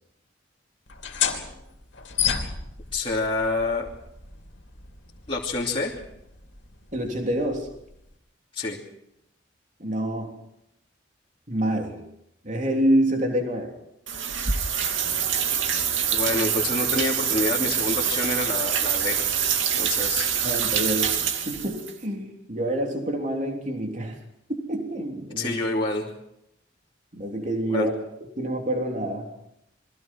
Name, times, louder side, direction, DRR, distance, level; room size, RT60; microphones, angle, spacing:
sound 1, 0.9-8.2, left 8 dB, 75° left, 2.8 m, -33 dB
voice 1, 2.9-3.9 5.3-6.0 8.5-8.8 16.1-19.3 19.7-20.3 25.4-26.1 27.7-27.9, left 2 dB, 30° left, -4 dB, 2.8 m, -27 dB
voice 2, 6.9-7.7 9.8-10.4 11.5-12.0 12.4-13.7 20.4-21.1 21.5-24.2 24.5-25.6 27.1-27.9 28.4-29.3, right 1 dB, 40° right, 2 dB, 3.4 m, -27 dB
sound 2, 14.1-21.9, right 8 dB, 85° right, 2.4 m, -25 dB
28.5 x 22.5 x 4.6 m, 0.80 s
head